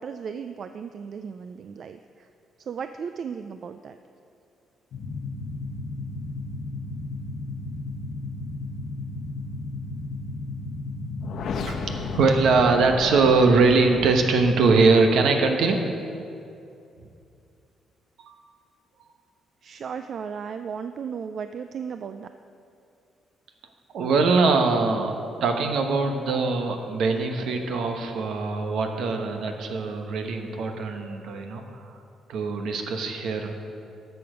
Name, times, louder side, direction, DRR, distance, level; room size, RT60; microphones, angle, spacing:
voice 1, 0.0-2.3 2.6-4.0 19.6-22.3, right 6 dB, 55° right, 9 dB, 0.4 m, -35 dB
sound 1, 4.9-14.6, left 3 dB, 65° left, 0.9 m, -34 dB
voice 2, 11.7-15.9 18.2-18.3 23.9-25.1 25.4-31.9 32.3-33.5, right 4 dB, 75° right, 4 dB, 1.1 m, -22 dB
12.5 x 7.0 x 5.0 m, 2.6 s
cardioid pair, 90°, 0 cm